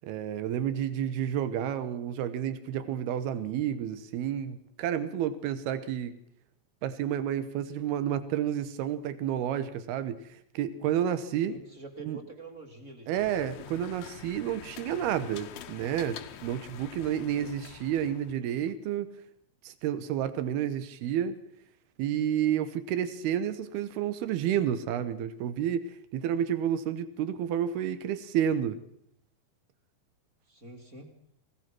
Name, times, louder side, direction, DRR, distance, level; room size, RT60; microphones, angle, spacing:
voice 1, 0.0-6.2 6.8-11.6 12.0-12.2 13.1-19.1 19.6-21.4 22.0-28.8, right 10 dB, 90° right, 12 dB, 3.1 m, -30 dB
voice 2, 11.4-13.2 17.3-17.5 30.5-31.1, right 3 dB, 20° right, 4 dB, 2.3 m, -46 dB
sound 1, 13.1-18.3, left 9 dB, 65° left, 1.9 m, -46 dB
25.5 x 17.0 x 6.1 m, 0.73 s
omnidirectional pair, 4.4 m